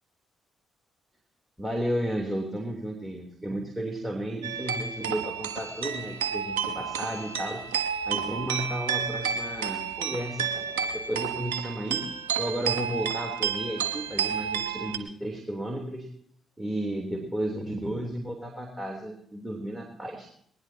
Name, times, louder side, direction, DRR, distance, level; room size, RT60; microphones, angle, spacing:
voice 1, 1.6-7.6 8.1-10.7 10.9-12.1 12.4-16.1 16.6-20.3, right 1 dB, 15° right, 0 dB, 3.7 m, -33 dB
sound 1, 4.4-15.0, right 7 dB, 80° right, 1.0 m, -31 dB
20.0 x 19.5 x 3.0 m, 0.65 s
hypercardioid pair, 45°, 0 cm